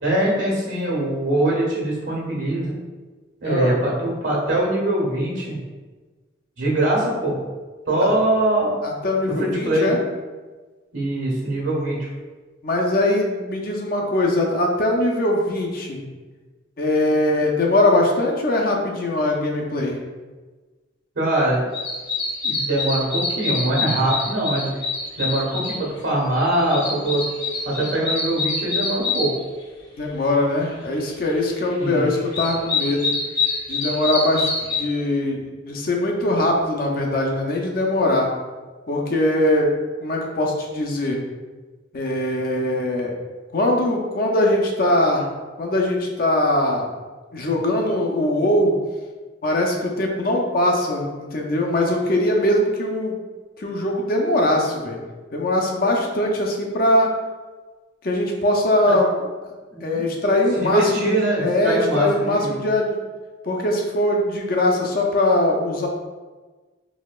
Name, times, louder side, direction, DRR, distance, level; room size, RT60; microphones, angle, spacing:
voice 1, 0.0-2.8 3.4-5.6 6.6-7.4 7.9-8.8 9.4-9.9 10.9-12.1 21.1-21.6 22.4-24.7 25.2-27.2 27.6-29.3 31.8-32.0 58.9-59.0 59.7-60.0 60.6-62.6, right 1 dB, 85° right, -4 dB, 1.3 m, -22 dB
voice 2, 3.4-3.8 8.8-10.0 12.6-16.0 16.8-20.0 30.0-33.1 33.7-38.3 38.9-39.7 40.0-41.2 41.9-43.1 43.5-45.3 45.6-46.9 47.3-48.7 49.4-53.2 53.6-55.0 55.3-57.1 58.0-59.1 59.8-63.0 63.4-65.9, left 1 dB, 50° left, 0 dB, 0.5 m, -21 dB
sound 1, 21.7-25.8 26.2-29.3 31.7-31.8 32.2-34.8, left 4 dB, 65° left, 1.2 m, -25 dB
4.1 x 2.8 x 2.3 m, 1.3 s
head